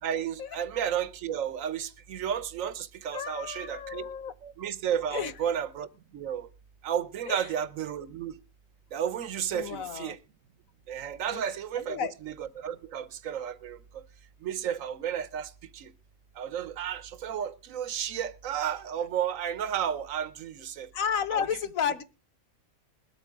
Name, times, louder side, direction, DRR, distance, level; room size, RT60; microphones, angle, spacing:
voice 1, 0.0-4.1 4.4-6.5 6.8-8.4 8.9-10.2 10.9-14.0 14.4-15.9 16.4-20.9 21.3-21.4, right 9 dB, 75° right, 1.2 m, -33 dB
voice 2, 3.1-4.3 5.1-5.3 7.3-7.5 9.5-10.2 11.3-11.4 11.8-12.1 20.9-22.0, left 8 dB, 85° left, 1.4 m, -32 dB
21.0 x 8.4 x 3.7 m
omnidirectional pair, 1.4 m